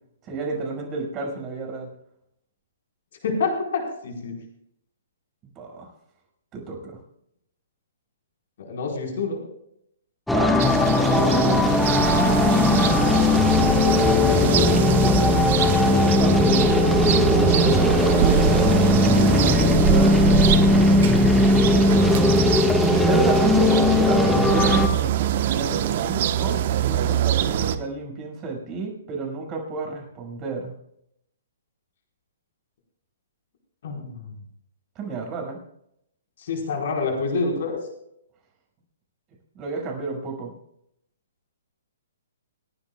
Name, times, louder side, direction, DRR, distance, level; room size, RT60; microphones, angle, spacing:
voice 1, 0.2-1.9 5.4-5.9 6.5-7.0 10.3-10.6 11.1-11.7 12.2-12.6 16.1-18.1 19.3-20.3 23.0-26.6 26.8-30.7 35.0-35.6 39.5-40.5, right 4 dB, 25° right, 1 dB, 6.1 m, -30 dB
voice 2, 3.2-4.3 8.6-9.4 13.5-15.7 33.8-34.3 36.4-37.8, left 4 dB, 60° left, 1 dB, 4.6 m, -28 dB
sound 1, 10.3-24.9, left 2 dB, 5° left, 1.5 m, -18 dB
sound 2, 10.6-27.8, right 9 dB, 50° right, 1.1 m, -24 dB
28.5 x 10.0 x 2.3 m, 0.75 s
hypercardioid pair, 135°, 0 cm